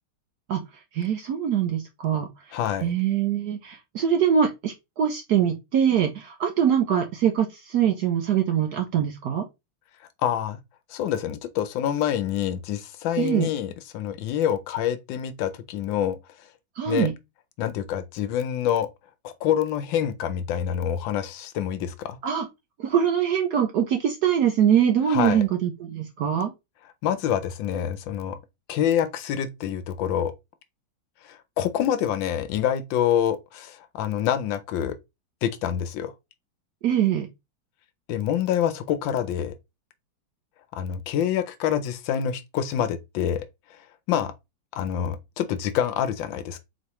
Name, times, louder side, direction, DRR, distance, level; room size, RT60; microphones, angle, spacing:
voice 1, 0.9-2.3 2.8-9.4 13.2-13.5 16.8-17.1 22.2-22.5 22.8-26.5 36.8-37.3, right 9 dB, 70° right, 0.9 m, -23 dB
voice 2, 2.5-2.9 10.2-10.6 10.9-16.2 16.9-17.1 17.6-18.9 19.2-22.2 25.1-25.4 27.0-28.4 28.7-30.3 31.2-35.0 35.4-36.1 38.1-39.5 40.7-43.4 43.7-43.8 44.1-44.3 44.7-46.6, left 10 dB, 75° left, 1.2 m, -26 dB
4.2 x 3.1 x 2.9 m
omnidirectional pair, 2.2 m